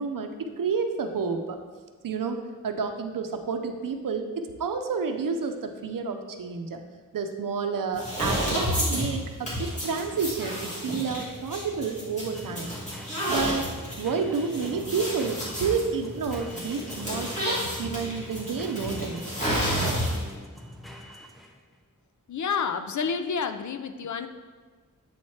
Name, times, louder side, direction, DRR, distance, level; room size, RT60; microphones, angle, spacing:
voice 1, 0.0-1.6 2.0-2.4 2.6-6.8 7.1-12.8 13.3-13.6 14.0-19.3, right 5 dB, 75° right, 6 dB, 0.6 m, -30 dB
sound 1, 7.9-20.4, equal, 20° left, 2.0 m, -31 dB
sound 2, 10.7-21.7, left 1 dB, ahead, 0.6 m, -44 dB
voice 2, 22.3-24.3, left 6 dB, 60° left, 8 dB, 0.4 m, -29 dB
7.9 x 4.3 x 3.1 m, 1.4 s
wide cardioid pair, 110°, 33 cm